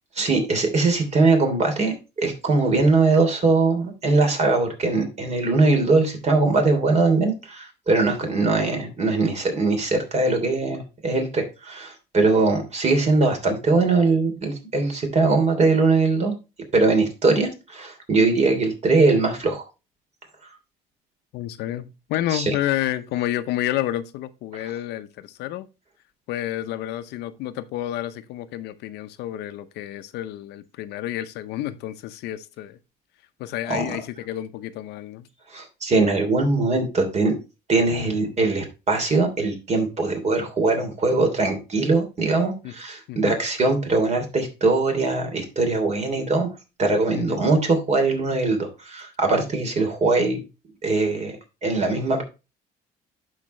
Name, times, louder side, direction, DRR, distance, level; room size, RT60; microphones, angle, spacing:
voice 1, 0.1-16.3 16.7-19.7 22.3-22.5 24.6-24.7 33.7-33.8 35.5-37.3 37.7-46.5 46.8-50.4 50.8-51.4 51.6-52.2, right 3 dB, 40° right, 2.9 m, -21 dB
voice 2, 21.3-25.7 26.3-32.8 33.4-35.3 42.6-42.7 43.1-43.4 47.1-47.4, left 13 dB, 85° left, 0.7 m, -30 dB
11.5 x 4.9 x 3.1 m
cardioid pair, 110°, 17 cm